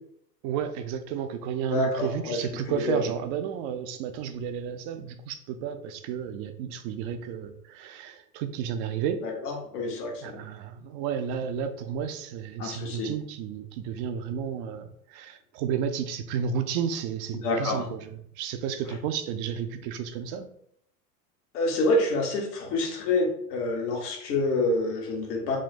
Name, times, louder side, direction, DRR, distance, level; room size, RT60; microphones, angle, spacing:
voice 1, 0.4-9.2 10.2-20.5, right 8 dB, 45° right, 9 dB, 0.5 m, -32 dB
voice 2, 1.7-2.4 2.7-3.1 9.2-10.4 12.6-13.1 17.4-17.8 21.5-25.6, left 2 dB, 70° left, 0 dB, 1.4 m, -27 dB
3.7 x 2.2 x 4.1 m, 0.69 s
hypercardioid pair, 100°, 48 cm